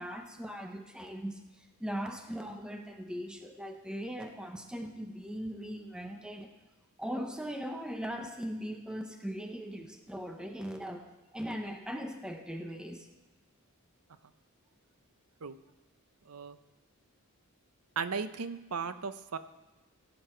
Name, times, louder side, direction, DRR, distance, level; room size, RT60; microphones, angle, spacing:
voice 1, 0.0-6.5 7.0-13.1, equal, 5° right, 4 dB, 0.8 m, -39 dB
voice 2, 16.3-16.6 18.0-19.4, right 5 dB, 85° right, 12 dB, 0.6 m, -36 dB
16.0 x 7.8 x 4.4 m, 1.1 s
head